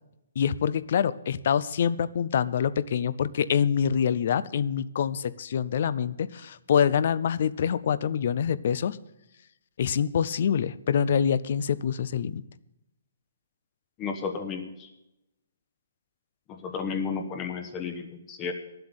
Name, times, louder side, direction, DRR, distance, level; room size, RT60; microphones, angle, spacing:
voice 1, 0.4-9.0 9.8-12.4, left 8 dB, 50° left, 18 dB, 0.6 m, -25 dB
voice 2, 14.0-14.9 16.5-18.5, left 5 dB, 20° left, 5 dB, 1.0 m, -33 dB
11.5 x 7.8 x 8.9 m, 0.89 s
hypercardioid pair, 165°, 0 cm